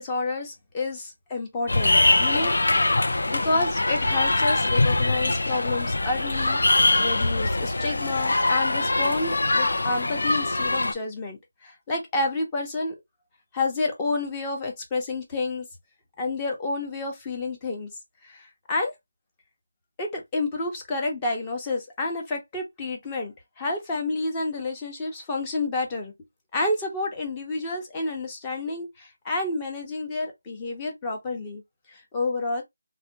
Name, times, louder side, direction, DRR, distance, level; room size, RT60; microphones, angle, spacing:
voice 1, 0.0-2.9 3.3-12.9 13.5-15.7 16.2-17.9 18.2-18.9 20.0-26.1 26.5-31.6 31.9-32.6, left 3 dB, 15° left, 0.8 m, -29 dB
sound 1, 1.7-10.9, left 2 dB, 65° left, 0.5 m, -23 dB
3.4 x 2.2 x 2.6 m
figure-of-eight pair, 165°, 0 cm